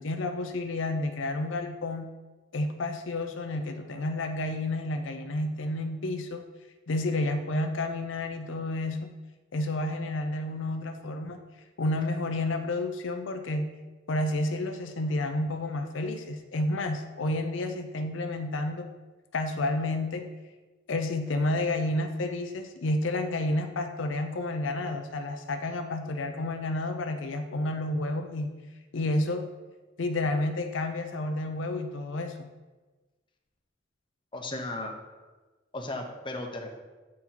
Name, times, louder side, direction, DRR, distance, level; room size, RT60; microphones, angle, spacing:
voice 1, 0.0-2.1 2.5-6.4 6.9-9.1 9.5-11.4 11.8-13.7 14.1-18.9 19.3-20.3 20.9-28.5 28.9-29.5 30.0-32.5, left 2 dB, 85° left, 6 dB, 0.6 m, -30 dB
voice 2, 34.3-34.9 35.7-36.8, left 2 dB, 25° left, 2 dB, 0.8 m, -35 dB
8.5 x 4.4 x 3.9 m, 1.2 s
head